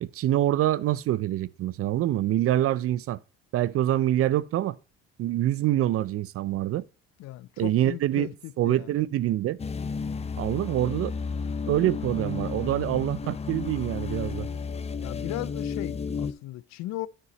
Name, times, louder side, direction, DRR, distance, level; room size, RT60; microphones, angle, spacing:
voice 1, 0.0-3.2 3.5-4.8 5.2-6.8 7.6-8.3 8.6-9.6 10.4-11.1 11.7-14.5, right 13 dB, 50° right, 0.5 m, -25 dB
voice 2, 7.2-8.9 15.0-17.1, left 17 dB, 65° left, 0.5 m, -37 dB
sound 1, 9.6-16.3, left 5 dB, 20° left, 0.6 m, -32 dB
9.4 x 6.0 x 3.1 m
supercardioid pair, 75°, 30 cm